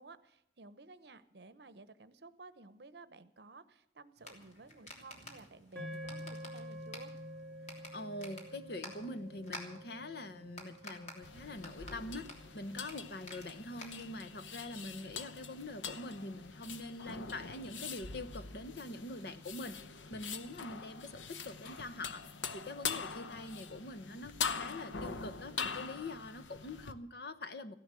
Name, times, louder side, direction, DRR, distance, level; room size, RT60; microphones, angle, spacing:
voice 1, 0.0-7.1, right 3 dB, 60° right, 0.9 m, -54 dB
sound 1, 4.2-14.4, left 1 dB, 40° left, 3.2 m, -52 dB
sound 2, 5.7-14.1, equal, 5° left, 2.8 m, -49 dB
voice 2, 7.9-19.8 20.1-22.2 22.5-27.7, left 2 dB, 60° left, 1.0 m, -44 dB
sound 3, 11.2-26.9, left 5 dB, 85° left, 0.9 m, -43 dB
15.5 x 11.0 x 7.5 m
head